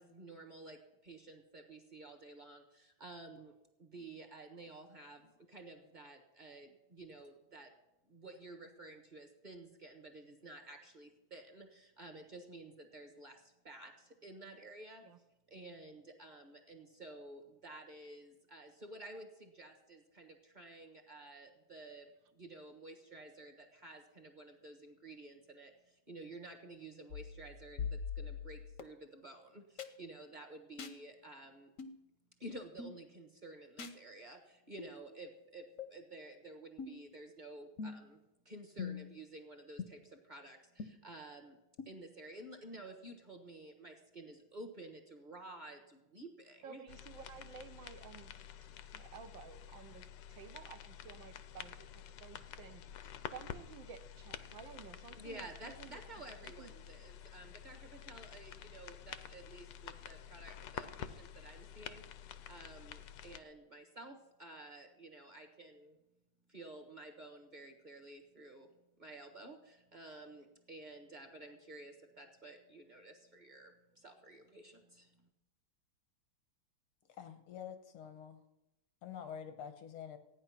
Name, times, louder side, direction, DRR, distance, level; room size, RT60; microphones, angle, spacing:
voice 1, 0.0-3.5 3.8-7.7 8.1-15.1 15.5-31.7 32.4-38.2 38.4-41.6 41.8-46.8 55.1-62.0 62.5-66.0 66.5-75.3, right 2 dB, 25° right, 3 dB, 1.2 m, -52 dB
sound 1, 27.1-28.8 29.8-29.9 30.8-31.0 31.8-32.0 32.8-33.0 33.8-34.0 34.8-34.9 35.8-35.9 36.8-37.1 37.8-38.1 38.8-39.2 39.8-39.9 40.8-40.9 41.8-41.9, left 6 dB, 50° left, 1.0 m, -42 dB
voice 2, 46.6-48.3 48.9-56.7, right 7 dB, 70° right, 8 dB, 1.4 m, -53 dB
sound 2, 46.9-63.4, left 9 dB, 70° left, 1.2 m, -50 dB
voice 3, 77.1-78.4 79.0-80.2, left 8 dB, 90° left, 9 dB, 2.1 m, -47 dB
15.0 x 9.6 x 5.9 m, 0.94 s
omnidirectional pair, 2.3 m